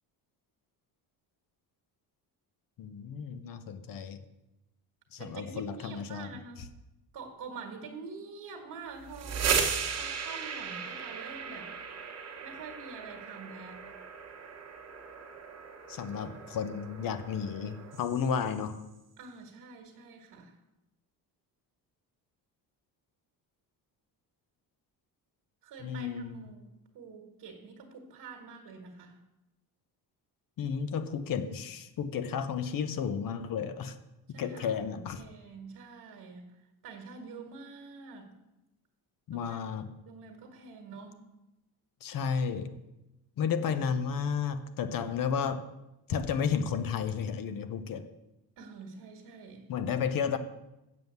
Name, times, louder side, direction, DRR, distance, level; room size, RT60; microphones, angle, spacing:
voice 1, 2.8-4.2 5.1-6.3 15.9-18.8 25.8-26.5 30.6-34.0 34.4-35.2 39.3-39.9 42.0-42.7 43.4-45.6 46.1-48.1 49.7-50.4, left 7 dB, 55° left, 10 dB, 0.9 m, -32 dB
voice 2, 5.2-6.6 7.1-11.7 12.4-13.9 19.2-20.6 25.6-29.2 34.3-38.3 39.3-41.2 48.6-49.7, right 4 dB, 60° right, 2 dB, 1.7 m, -46 dB
sound 1, 9.0-18.7, right 6 dB, 40° right, 1.3 m, -36 dB
7.5 x 7.3 x 8.0 m, 0.95 s
cardioid pair, 170°, 39 cm